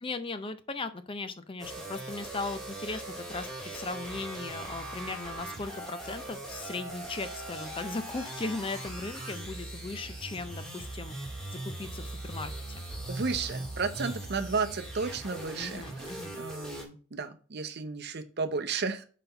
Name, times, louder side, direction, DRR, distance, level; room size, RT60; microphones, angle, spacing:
voice 1, 0.0-11.1 11.5-12.8 15.6-16.3, left 3 dB, 25° left, 10 dB, 0.5 m, -38 dB
sound 1, 1.6-16.8, right 1 dB, ahead, 1.8 m, -40 dB
voice 2, 13.1-19.0, right 4 dB, 50° right, 8 dB, 0.7 m, -33 dB
5.9 x 4.2 x 5.5 m, 0.40 s
head